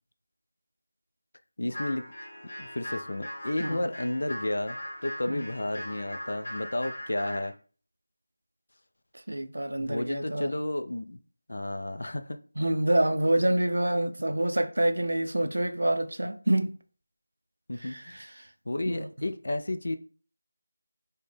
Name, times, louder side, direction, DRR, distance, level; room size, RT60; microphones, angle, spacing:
voice 1, 1.6-2.0 2.6-7.5 9.8-11.2 11.5-12.4 17.7-18.3 18.7-20.0, left 1 dB, 55° left, 0.3 m, -32 dB
sound 1, 1.7-7.5, equal, 40° left, 1.1 m, -40 dB
voice 2, 9.3-10.5 12.6-16.7 17.8-18.3 18.9-19.1, right 1 dB, 90° right, 0.4 m, -27 dB
4.0 x 2.1 x 3.2 m
figure-of-eight pair, 180°, 0 cm